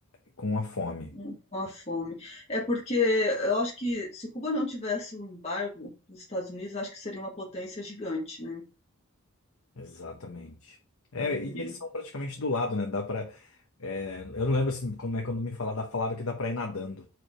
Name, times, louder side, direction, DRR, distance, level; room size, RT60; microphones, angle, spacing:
voice 1, 0.4-1.1 9.8-10.8 11.1-13.5 13.8-17.1, left 3 dB, 75° left, 0.9 m, -32 dB
voice 2, 1.1-8.6 11.2-11.8, left 2 dB, 30° left, 1.6 m, -32 dB
4.8 x 4.7 x 5.0 m
head